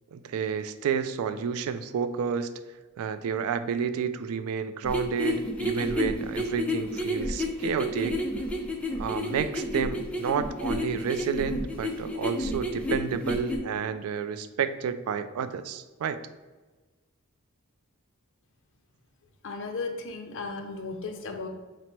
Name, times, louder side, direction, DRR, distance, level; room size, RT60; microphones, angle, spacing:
voice 1, 0.1-2.5 3.0-8.2 8.9-16.2, right 7 dB, 75° right, 13 dB, 0.3 m, -30 dB
sound 1, 4.8-13.6, left 1 dB, 5° left, 0.4 m, -30 dB
voice 2, 19.4-21.5, left 3 dB, 60° left, 4 dB, 0.5 m, -35 dB
4.2 x 2.1 x 4.4 m, 1.3 s
head